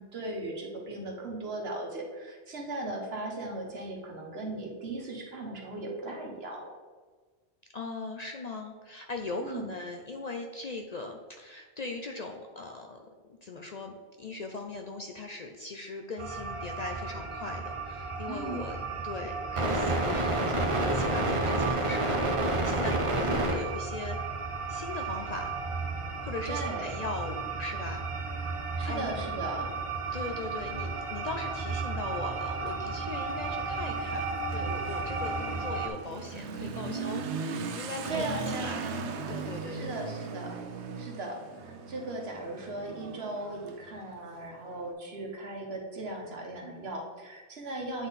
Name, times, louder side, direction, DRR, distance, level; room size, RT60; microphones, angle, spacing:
voice 1, 0.0-6.7 9.4-9.7 18.3-18.7 23.2-23.4 26.4-26.9 28.8-29.7 38.1-39.1 39.7-40.6 41.0-48.1, right 2 dB, 65° right, 0 dB, 1.4 m, -37 dB
voice 2, 7.7-13.0 13.3-18.8 19.0-24.2 24.7-25.5 26.2-28.3 28.8-29.1 30.1-38.8 39.3-39.9, left 3 dB, 55° left, 3 dB, 0.5 m, -40 dB
sound 1, 16.2-35.9, right 3 dB, 35° right, 0.7 m, -32 dB
Motorcycle / Accelerating revving vroom, 32.5-44.8, right 5 dB, 85° right, 0.9 m, -39 dB
8.5 x 3.8 x 4.0 m, 1.4 s
omnidirectional pair, 1.1 m